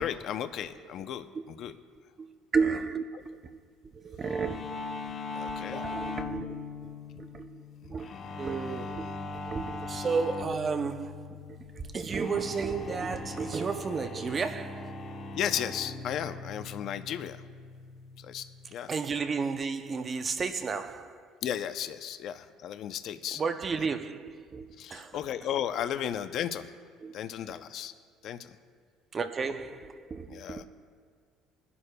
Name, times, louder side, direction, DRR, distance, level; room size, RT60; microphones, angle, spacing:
voice 1, 0.0-1.7 5.3-5.9 8.2-8.4 15.3-17.4 18.2-18.9 21.4-23.4 24.8-26.7 27.1-27.9 28.2-28.6 30.3-30.6, left 10 dB, 55° left, 0.5 m, -35 dB
voice 2, 2.5-3.4 3.9-4.8 5.7-9.1 9.4-15.0 18.9-21.3 23.4-25.2 27.0-27.1 27.5-27.6 29.1-30.6, right 5 dB, 30° right, 0.5 m, -33 dB
sound 1, 4.2-18.7, left 3 dB, 35° left, 0.8 m, -40 dB
22.5 x 11.0 x 2.2 m
cardioid pair, 130°, 0 cm